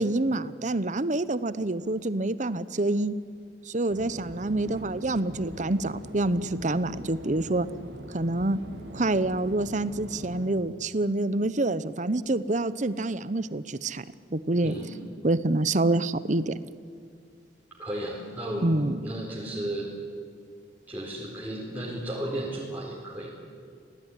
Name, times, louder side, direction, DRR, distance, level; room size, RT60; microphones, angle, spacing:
voice 1, 0.0-3.1 3.7-7.7 8.1-8.6 8.9-14.0 14.3-14.7 15.2-16.5 18.6-19.0, right 2 dB, 40° right, 15 dB, 0.9 m, -27 dB
sound 1, 3.9-10.5, equal, 70° right, 3.1 m, -42 dB
voice 2, 14.6-14.9 17.8-19.9 20.9-23.3, right 1 dB, 10° right, -6 dB, 4.6 m, -34 dB
27.5 x 18.0 x 10.0 m, 2.2 s
head